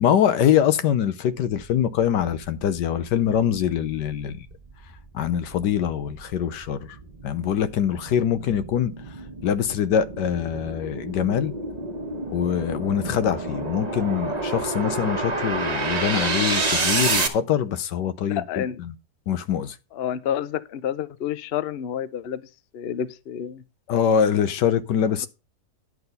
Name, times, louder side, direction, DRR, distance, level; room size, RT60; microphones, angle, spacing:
voice 1, 0.0-4.5 5.1-6.8 7.2-8.9 9.4-11.5 12.3-18.9 19.3-19.7 23.9-25.3, left 9 dB, 85° left, 1.4 m, -23 dB
sound 1, 4.1-17.3, right 3 dB, 25° right, 1.1 m, -29 dB
voice 2, 18.3-18.8 19.9-22.4 22.7-23.6, left 9 dB, 55° left, 0.7 m, -29 dB
11.0 x 6.1 x 5.4 m
omnidirectional pair, 1.8 m